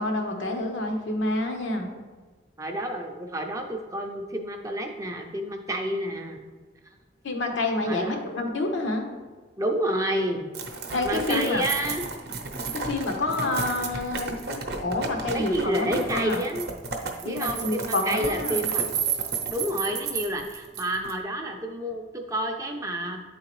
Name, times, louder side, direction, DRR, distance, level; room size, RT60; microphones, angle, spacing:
voice 1, 0.0-1.9 7.2-9.1 10.9-11.6 12.7-16.4 17.2-18.6, left 2 dB, 85° left, 3 dB, 0.9 m, -28 dB
voice 2, 2.6-6.4 7.9-8.2 9.6-10.5 11.0-12.0 15.3-16.7 17.2-18.9 19.5-23.2, right 1 dB, 15° right, 3 dB, 0.4 m, -29 dB
sound 1, 10.5-21.1, right 5 dB, 55° right, 0.6 m, -32 dB
9.1 x 3.7 x 3.0 m, 1.3 s
head